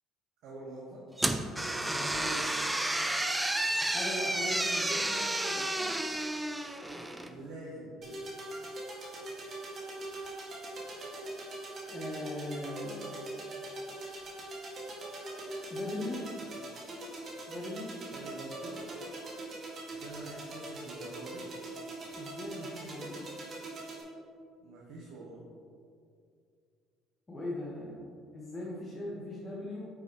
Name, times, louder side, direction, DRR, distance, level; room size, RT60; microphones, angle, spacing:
voice 1, 0.4-1.0 7.2-7.9 16.4-16.5 18.1-18.8 19.9-21.5 24.6-25.4, right 2 dB, 70° right, -4 dB, 1.3 m, -46 dB
sound 1, 1.2-7.3, right 1 dB, 10° right, 0.4 m, -31 dB
voice 2, 1.9-2.4 3.9-6.0 11.9-13.2 15.7-16.3 17.5-18.0 22.2-23.3 27.3-29.9, left 1 dB, 15° left, -5 dB, 1.2 m, -39 dB
sound 2, 8.0-24.0, right 2 dB, 40° right, 1.8 m, -42 dB
8.6 x 6.2 x 3.0 m, 2.3 s
cardioid pair, 125°, 0 cm